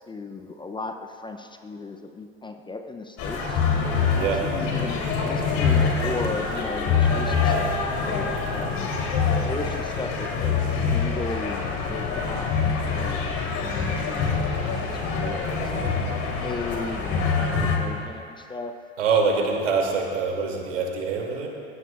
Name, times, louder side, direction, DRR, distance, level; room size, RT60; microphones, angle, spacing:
voice 1, 0.1-3.6 4.1-8.9 9.4-13.2 13.5-15.9 16.4-18.7 19.2-19.5, left 3 dB, 10° left, 6 dB, 0.6 m, -36 dB
sound 1, 3.2-17.8, left 5 dB, 50° left, 3.3 m, -25 dB
voice 2, 4.1-4.4 19.0-21.5, right 5 dB, 75° right, 0 dB, 2.8 m, -24 dB
21.0 x 17.5 x 2.5 m, 2.4 s
hypercardioid pair, 90°, 38 cm